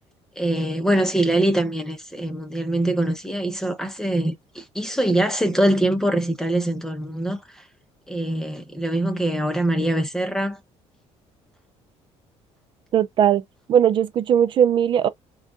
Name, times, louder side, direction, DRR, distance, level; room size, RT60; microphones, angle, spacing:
voice 1, 0.4-7.6 8.1-10.6, right 1 dB, 5° left, 0.9 m, -23 dB
voice 2, 12.9-13.4 13.7-15.1, right 9 dB, 45° right, 0.5 m, -18 dB
5.7 x 2.4 x 2.6 m
cardioid pair, 155°, 12 cm